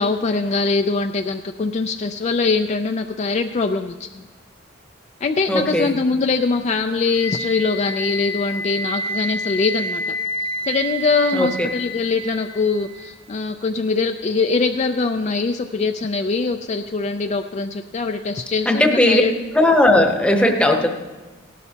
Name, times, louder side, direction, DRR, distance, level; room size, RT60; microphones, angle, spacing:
voice 1, 0.0-4.1 5.2-10.2 10.7-19.3, left 4 dB, 35° left, 5 dB, 0.4 m, -22 dB
voice 2, 5.5-5.9 11.3-11.5 18.7-19.2 19.5-20.9, left 1 dB, 5° left, 3 dB, 0.9 m, -16 dB
Wind instrument woodwind instrument, 7.1-13.1, equal, 80° left, 1.3 m, -29 dB
18.0 x 12.5 x 2.8 m, 1.2 s
head